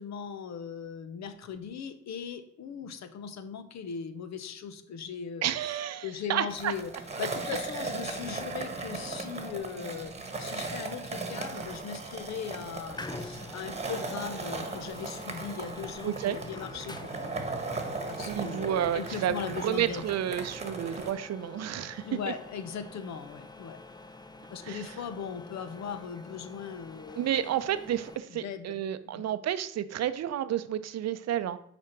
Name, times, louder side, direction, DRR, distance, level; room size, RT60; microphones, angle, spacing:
voice 1, 0.0-5.4 6.0-6.9 7.2-10.1 10.4-17.3 18.1-20.0 22.0-23.8 24.5-27.5 28.3-28.8 29.0-29.3, left 7 dB, 65° left, 10 dB, 0.9 m, -39 dB
voice 2, 5.4-6.7 11.5-11.7 16.0-16.4 18.2-22.3 24.6-24.9 27.1-31.6, right 10 dB, 60° right, 13 dB, 0.6 m, -31 dB
Skateboard, 6.5-21.1, right 3 dB, 20° right, 1.3 m, -38 dB
sound 1, 12.9-28.2, left 2 dB, 15° left, 0.5 m, -47 dB
6.0 x 4.4 x 5.8 m, 0.69 s
cardioid pair, 90°, 30 cm